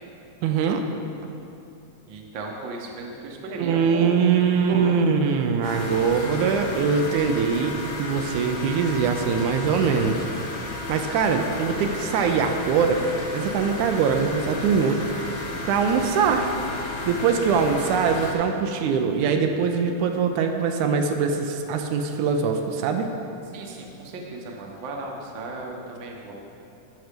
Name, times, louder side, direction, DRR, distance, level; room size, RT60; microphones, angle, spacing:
voice 1, 0.4-0.8 3.6-10.3 10.9-13.0 13.3-16.5 16.8-23.1, right 6 dB, 80° right, 5 dB, 2.0 m, -23 dB
voice 2, 2.1-4.2 4.6-4.9 23.5-26.3, right 3 dB, 60° right, 0 dB, 1.3 m, -35 dB
sound 1, 5.6-18.3, left 2 dB, 50° left, 1.7 m, -33 dB
14.0 x 5.6 x 5.1 m, 2.8 s
omnidirectional pair, 3.5 m